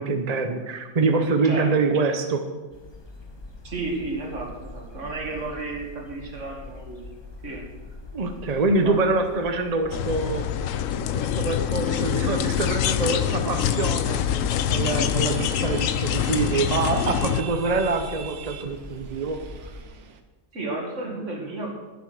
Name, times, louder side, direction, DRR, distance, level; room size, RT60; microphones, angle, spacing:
voice 1, 0.0-2.4 8.1-10.5 11.1-14.2 14.7-19.4, right 3 dB, 35° right, 6 dB, 0.7 m, -25 dB
voice 2, 1.4-1.9 3.6-7.0 7.4-7.7 8.7-9.0 20.5-21.7, right 2 dB, 55° right, 1 dB, 2.4 m, -33 dB
sound 1, 2.7-19.8, left 1 dB, 20° left, 1.5 m, -43 dB
sound 2, 9.9-17.4, left 10 dB, 70° left, 1.0 m, -25 dB
sound 3, 14.8-20.2, right 6 dB, 90° right, 1.4 m, -43 dB
11.5 x 9.6 x 6.1 m, 1.3 s
omnidirectional pair, 1.5 m